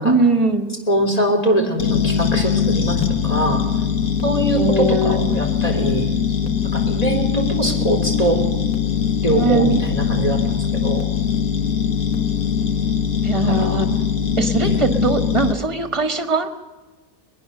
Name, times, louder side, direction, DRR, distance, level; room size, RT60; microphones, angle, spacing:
voice 1, 0.0-0.7 4.5-5.3 9.3-9.8 13.2-14.1 14.4-16.5, right 2 dB, 20° right, 7 dB, 1.7 m, -20 dB
voice 2, 0.9-3.0 3.2-3.6 4.2-6.1 6.4-8.4 9.2-11.1 13.5-13.8 14.6-14.8, right 1 dB, 25° left, 3 dB, 3.6 m, -22 dB
sound 1, 1.8-15.5, left 7 dB, 80° left, 1.9 m, -21 dB
22.0 x 20.5 x 6.8 m, 1.3 s
omnidirectional pair, 1.5 m